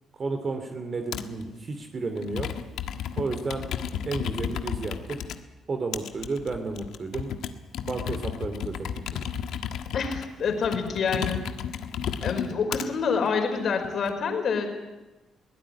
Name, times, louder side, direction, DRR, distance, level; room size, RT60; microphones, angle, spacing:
voice 1, 0.1-2.5 3.2-3.6 4.0-5.2 5.7-7.3 7.9-8.9 9.1-9.2, right 3 dB, 40° right, 6 dB, 2.8 m, -32 dB
Computer keyboard, 1.1-1.4 2.2-5.4 5.9-12.9 13.5-14.1, left 8 dB, 80° left, 1.5 m, -33 dB
voice 2, 9.9-11.5 12.2-14.7, left 5 dB, 60° left, 5 dB, 4.8 m, -27 dB
22.5 x 17.0 x 9.8 m, 1.1 s
cardioid pair, 90°, 0 cm